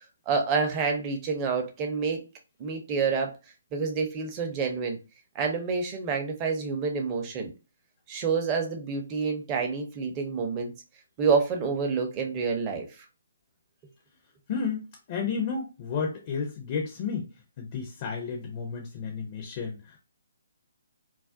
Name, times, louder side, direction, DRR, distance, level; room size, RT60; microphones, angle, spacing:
voice 1, 0.3-2.2 2.6-3.3 3.7-5.0 5.3-7.5 8.1-10.7 11.2-12.9, right 5 dB, 25° right, 2 dB, 0.5 m, -28 dB
voice 2, 14.5-17.3 17.6-20.0, left 5 dB, 35° left, 2 dB, 0.5 m, -32 dB
2.3 x 2.1 x 2.5 m, 0.29 s
figure-of-eight pair, 140°, 0 cm